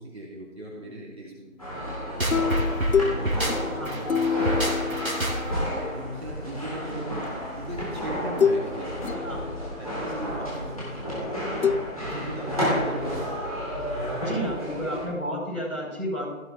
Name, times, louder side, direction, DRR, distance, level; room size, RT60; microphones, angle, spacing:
voice 1, 0.0-1.6 1.9-2.4 2.9-4.7 5.8-11.6 12.0-13.5, right 1 dB, 50° right, -5 dB, 3.5 m, -38 dB
sound 1, 1.6-15.0, equal, 25° left, 3.2 m, -31 dB
sound 2, 2.2-5.7, right 1 dB, 85° right, 2.6 m, -27 dB
sound 3, 2.3-5.9 7.3-7.4 8.4-8.7 9.0-9.9 11.6-11.8, left 6 dB, 85° left, 0.6 m, -27 dB
voice 2, 14.2-16.4, equal, 5° right, -24 dB, 4.2 m, -31 dB
16.5 x 7.4 x 3.5 m, 1.1 s
figure-of-eight pair, 175°, 41 cm